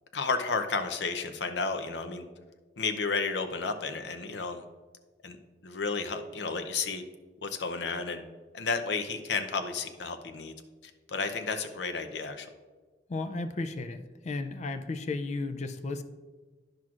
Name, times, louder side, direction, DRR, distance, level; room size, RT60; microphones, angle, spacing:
voice 1, 0.1-2.2 2.8-4.6 5.2-5.4 5.6-7.0 7.4-8.2 8.5-10.5 11.1-12.5, left 4 dB, 80° left, 7 dB, 0.6 m, -32 dB
voice 2, 13.1-16.0, left 3 dB, 40° left, 9 dB, 0.4 m, -34 dB
10.5 x 6.0 x 2.4 m, 1.3 s
head